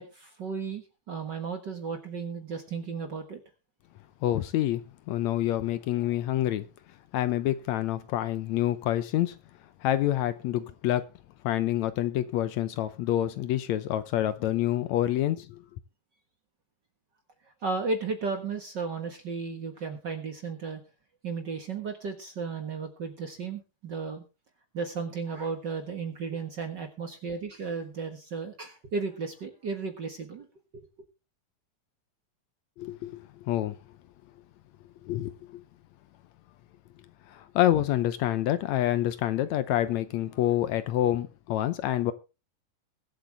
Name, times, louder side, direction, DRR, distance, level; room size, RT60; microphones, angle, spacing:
voice 1, 0.0-3.4 17.6-20.8 21.2-24.2 24.7-30.5 30.7-30.8, right 4 dB, 45° right, 1.6 m, -34 dB
voice 2, 4.2-6.7 7.1-9.4 9.8-11.0 11.4-15.6 32.8-33.8 35.1-35.6 37.3-42.1, left 13 dB, 75° left, 1.9 m, -27 dB
22.0 x 8.0 x 3.4 m
omnidirectional pair, 3.6 m